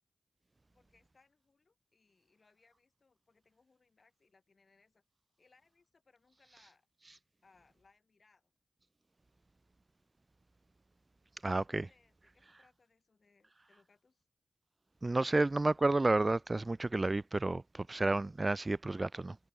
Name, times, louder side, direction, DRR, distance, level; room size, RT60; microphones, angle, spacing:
voice 1, 0.7-5.0 5.4-6.9 7.4-8.5 11.4-14.2, left 4 dB, 55° left, 7.3 m, -70 dB
voice 2, 11.4-11.9 15.0-19.4, right 2 dB, 30° right, 0.3 m, -31 dB
cardioid pair, 55°, 0 cm